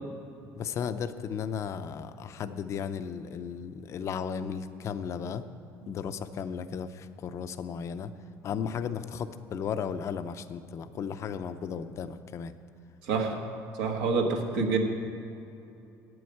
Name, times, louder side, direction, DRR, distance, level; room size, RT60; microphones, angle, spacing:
voice 1, 0.6-5.5 5.9-8.1 8.4-12.5, left 7 dB, 40° left, 11 dB, 0.5 m, -35 dB
voice 2, 13.0-13.4 13.8-14.8, right 4 dB, 90° right, 2 dB, 1.4 m, -27 dB
8.8 x 7.8 x 8.5 m, 2.8 s
cardioid pair, 125°, 7 cm